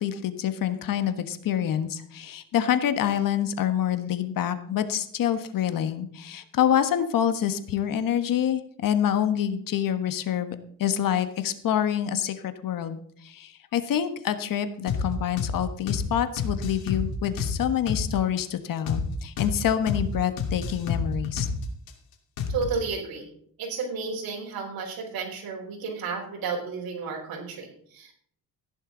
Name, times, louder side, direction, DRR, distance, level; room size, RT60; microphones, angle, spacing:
voice 1, 0.0-21.5, left 10 dB, 65° left, 10 dB, 1.4 m, -27 dB
sound 1, 14.9-15.1 15.4-15.6 15.9-16.1 16.4-18.1 18.4-18.5 18.9-19.1 19.4-19.6 19.9-20.1 20.4-21.9 22.4-22.8, left 5 dB, 90° left, 2.7 m, -29 dB
voice 2, 22.5-23.3 23.6-28.1, right 4 dB, 80° right, -2 dB, 4.8 m, -32 dB
15.0 x 11.0 x 3.9 m, 0.62 s
cardioid pair, 115°, 35 cm